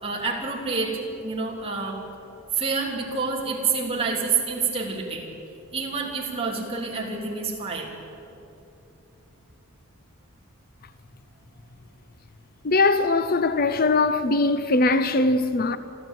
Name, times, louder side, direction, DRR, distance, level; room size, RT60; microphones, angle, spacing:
voice 1, 0.0-2.0 2.5-5.3 5.7-7.9, right 4 dB, 25° right, 3.4 m, -28 dB
voice 2, 12.6-15.8, left 3 dB, 40° left, 0.6 m, -21 dB
28.5 x 13.0 x 9.1 m
head